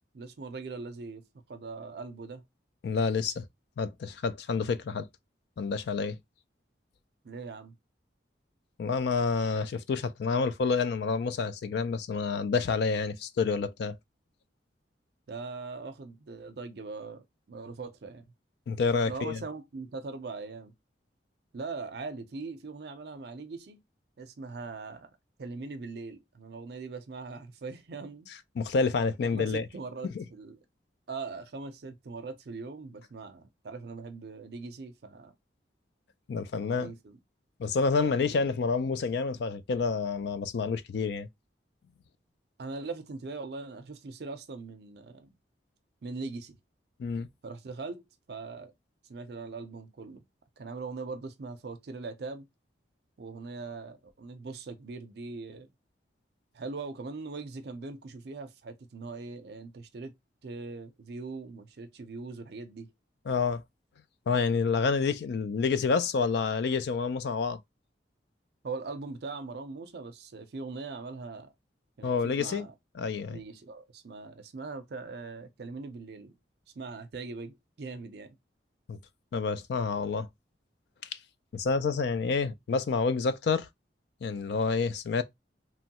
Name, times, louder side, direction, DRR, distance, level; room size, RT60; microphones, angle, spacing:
voice 1, 0.1-1.2 1.5-2.4 7.2-7.7 15.3-18.2 19.0-20.7 21.5-23.8 24.2-25.1 25.4-28.3 29.2-30.6 31.1-35.3 36.5-37.2 38.0-38.3 42.6-45.4 46.0-46.6 47.4-48.7 49.1-50.2 50.6-52.5 53.2-55.7 56.5-60.1 60.4-62.9 68.6-71.5 72.0-72.7 73.3-76.4 76.8-78.4, right 4 dB, 55° right, 0.4 m, -41 dB
voice 2, 2.8-3.4 3.8-5.1 5.6-6.2 8.8-14.0 18.7-19.4 28.6-29.7 30.1-30.2 36.3-36.9 37.6-41.3 47.0-47.3 63.3-63.6 64.3-67.6 72.0-72.7 73.0-73.4 78.9-79.0 79.3-80.3 81.5-83.7 84.2-85.2, left 4 dB, 60° left, 0.3 m, -28 dB
3.0 x 2.2 x 2.8 m
head